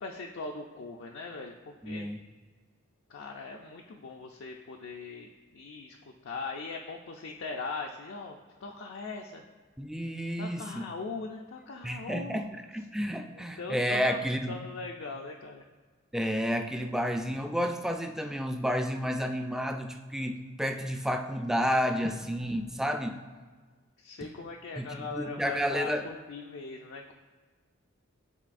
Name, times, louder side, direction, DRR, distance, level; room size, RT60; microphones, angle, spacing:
voice 1, 0.0-2.1 3.1-6.0 6.2-9.4 10.4-12.5 13.2-15.6 24.0-27.1, left 3 dB, 65° left, 1 dB, 0.4 m, -40 dB
voice 2, 1.8-2.2 9.8-10.9 11.8-14.5 16.1-23.2 24.8-26.1, equal, 5° right, 5 dB, 0.3 m, -31 dB
11.0 x 3.9 x 2.5 m, 1.4 s
head